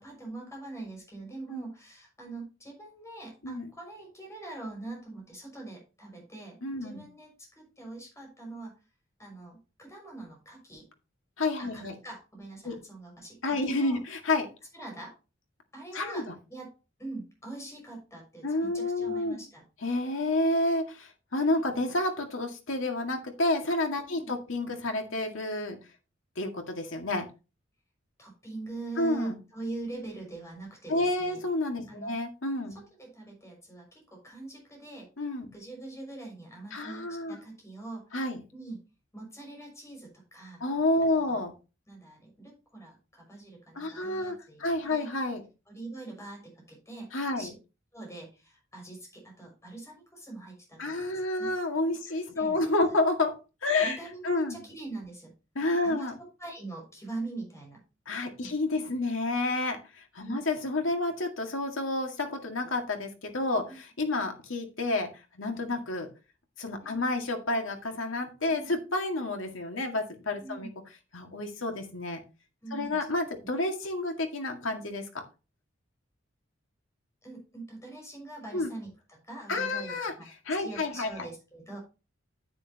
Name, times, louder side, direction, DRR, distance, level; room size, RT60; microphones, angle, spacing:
voice 1, 0.0-8.8 9.2-10.9 11.6-14.0 14.7-15.1 15.7-16.7 17.0-19.7 24.1-24.3 28.2-31.4 31.9-32.1 32.7-35.1 35.5-38.2 38.5-38.8 39.1-40.6 41.0-41.4 41.9-45.1 45.7-47.1 47.4-47.5 47.9-51.5 52.3-52.7 53.7-55.4 55.8-57.8 58.4-58.5 60.2-60.5 66.8-67.0 68.5-68.7 70.4-70.7 72.6-73.0 77.2-81.8, right 2 dB, 15° left, 0 dB, 6.1 m, -43 dB
voice 2, 6.6-7.0 11.4-11.9 12.6-12.8 13.4-14.5 15.9-16.3 18.4-19.4 19.8-25.8 26.4-27.3 29.0-29.4 30.9-32.8 35.2-35.5 36.7-37.4 38.1-38.4 40.6-41.5 43.8-44.3 44.6-45.4 47.1-47.5 50.8-54.0 54.2-54.6 55.6-56.1 58.1-65.1 65.3-66.1 66.6-70.7 71.1-72.2 72.7-75.2 78.5-78.7 79.5-80.1 80.5-81.1, left 2 dB, 90° left, 4 dB, 2.0 m, -30 dB
9.7 x 9.4 x 2.9 m, 0.31 s
head